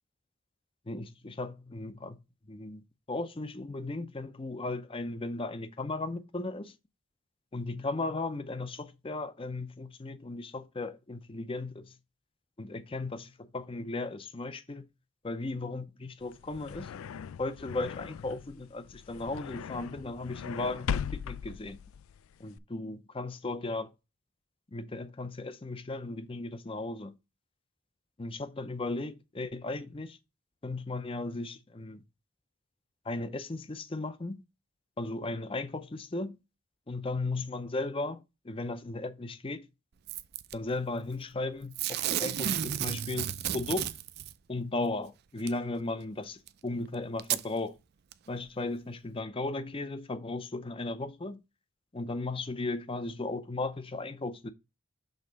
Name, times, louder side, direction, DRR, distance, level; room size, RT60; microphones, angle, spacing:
voice 1, 0.9-2.2 2.5-6.8 7.5-12.0 12.6-14.9 15.2-16.9 17.4-21.8 22.4-23.9 24.7-27.1 28.2-30.2 30.6-32.0 33.0-34.4 35.0-36.4 36.9-39.7 40.5-43.9 44.5-47.8 48.3-51.4 51.9-54.5, left 2 dB, 25° left, 0.5 m, -36 dB
sound 1, 16.2-22.6, left 7 dB, 80° left, 0.3 m, -39 dB
Packing tape duct tape / Tearing, 40.1-40.5 41.7-44.3 45.5-45.6 46.5-46.6 47.2-47.4 48.1-48.2, right 10 dB, 50° right, 0.4 m, -32 dB
6.4 x 3.6 x 5.0 m
head